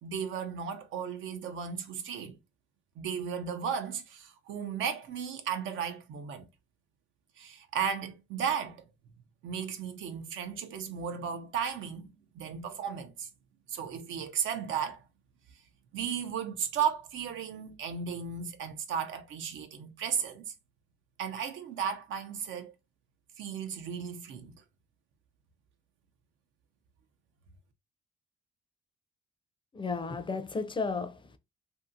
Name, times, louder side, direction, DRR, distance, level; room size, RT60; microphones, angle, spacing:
voice 1, 0.0-2.3 3.0-6.4 7.4-8.8 9.4-12.1 12.4-13.3 13.7-15.0 15.9-20.5 21.2-22.7 23.4-24.5, right 7 dB, 75° right, 0.6 m, -35 dB
voice 2, 29.7-31.4, left 4 dB, 25° left, 0.5 m, -33 dB
2.7 x 2.7 x 2.5 m
cardioid pair, 90°, 20 cm